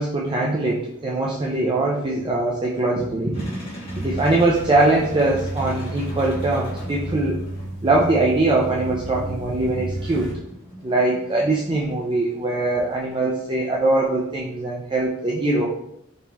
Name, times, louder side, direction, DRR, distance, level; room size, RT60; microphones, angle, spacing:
voice 1, 0.0-3.6 3.9-7.4 7.8-10.3 10.8-15.7, right 2 dB, 25° right, -3 dB, 0.5 m, -22 dB
sound 1, 3.3-14.1, equal, 30° left, 1.6 m, -39 dB
sound 2, 3.8-10.3, right 1 dB, 80° right, 1.6 m, -32 dB
5.3 x 3.2 x 2.9 m, 0.78 s
head